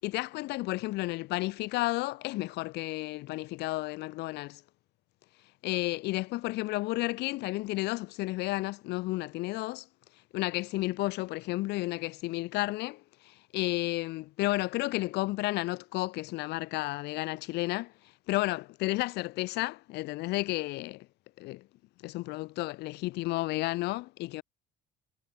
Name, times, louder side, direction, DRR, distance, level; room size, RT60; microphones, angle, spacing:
voice 1, 0.0-4.6 5.6-9.9 10.3-17.9 18.3-21.1 21.4-21.6 22.0-24.4, left 20 dB, 90° left, 1.9 m, -32 dB
cardioid pair, 110°, 17 cm